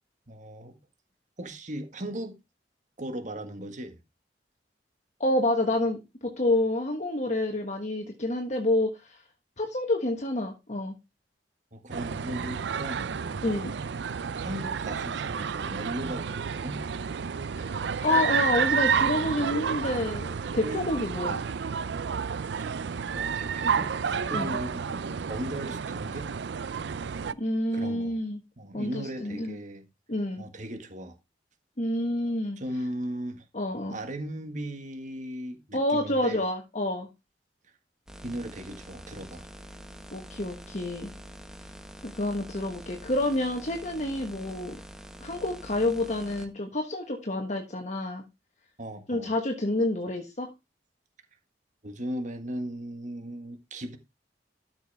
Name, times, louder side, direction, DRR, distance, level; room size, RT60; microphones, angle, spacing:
voice 1, 0.3-0.8 1.4-2.4 3.0-4.0 11.7-13.8 14.3-16.8 17.6-17.7 22.5-22.8 23.1-26.3 27.7-28.2 28.6-29.9 30.4-31.2 32.6-33.4 33.9-36.4 38.2-39.5 48.8-49.3 51.8-54.0, right 1 dB, 45° right, 1.7 m, -37 dB
voice 2, 5.2-9.2 9.6-10.9 13.4-13.7 17.6-17.7 18.0-21.4 24.3-24.6 27.4-28.4 28.7-29.6 30.1-30.4 31.8-32.6 33.5-34.0 35.7-37.1 40.1-41.1 42.1-44.8 45.2-48.2 49.1-50.5, left 1 dB, 45° left, 1.4 m, -28 dB
sound 1, 11.9-27.3, right 6 dB, 75° right, 0.5 m, -30 dB
sound 2, 38.1-46.5, equal, 5° right, 1.4 m, -46 dB
13.0 x 6.1 x 3.5 m
head